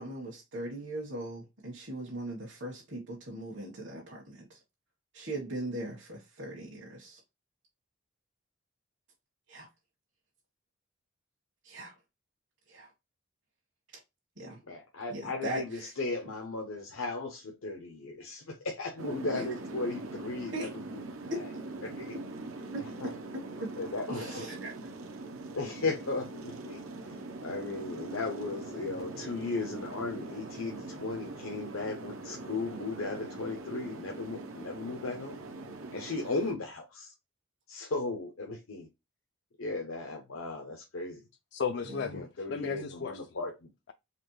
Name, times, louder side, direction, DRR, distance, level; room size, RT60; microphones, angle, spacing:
voice 1, 0.0-4.6 5.1-7.2 9.5-9.7 11.6-11.9 12.7-12.9 14.4-14.6 15.1-15.9 19.3-19.4 20.5-20.7 21.3-21.4 23.6-23.7 24.1-24.7 42.6-42.9, right 1 dB, 60° right, 1.3 m, -39 dB
voice 2, 14.7-21.5 21.8-22.1 23.0-23.1 23.8-24.5 25.5-26.8 27.4-35.4 35.9-37.1 37.7-38.9 39.6-41.2 42.1-43.7, left 3 dB, 90° left, 0.8 m, -36 dB
sound 1, 19.0-36.5, right 2 dB, 85° right, 0.8 m, -42 dB
voice 3, 41.5-43.3, left 6 dB, 55° left, 0.3 m, -35 dB
4.2 x 3.0 x 3.1 m
head